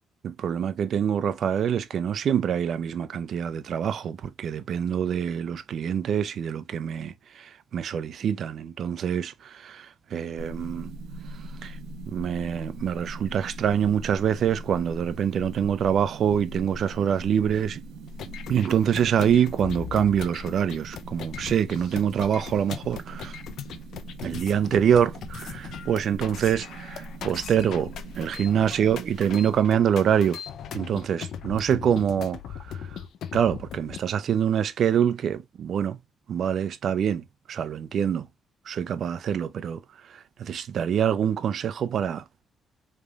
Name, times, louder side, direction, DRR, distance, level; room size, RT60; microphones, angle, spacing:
voice 1, 0.2-10.9 11.6-11.8 12.1-17.8 18.5-23.4 24.2-30.4 30.7-33.0 33.3-36.0 36.3-38.3 38.7-39.8 40.1-42.2, right 8 dB, 60° right, 0.6 m, -25 dB
sound 1, 10.4-29.6, right 2 dB, 90° right, 0.8 m, -41 dB
sound 2, 18.1-34.0, left 8 dB, 75° left, 0.6 m, -39 dB
5.0 x 3.3 x 2.4 m
cardioid pair, 90°, 0 cm